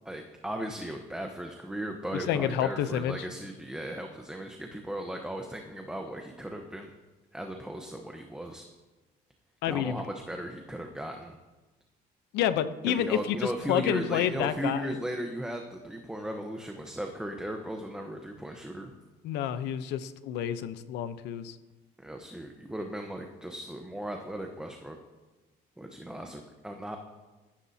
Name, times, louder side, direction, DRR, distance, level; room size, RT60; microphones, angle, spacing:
voice 1, 0.0-6.9 7.3-8.7 9.6-11.4 12.9-18.9 22.0-25.0 25.8-27.0, right 1 dB, 5° right, 3 dB, 1.0 m, -37 dB
voice 2, 2.1-3.3 9.6-10.0 12.3-14.9 19.2-21.6, left 10 dB, 85° left, 12 dB, 0.8 m, -29 dB
17.5 x 14.5 x 2.8 m, 1.2 s
cardioid pair, 110°, 17 cm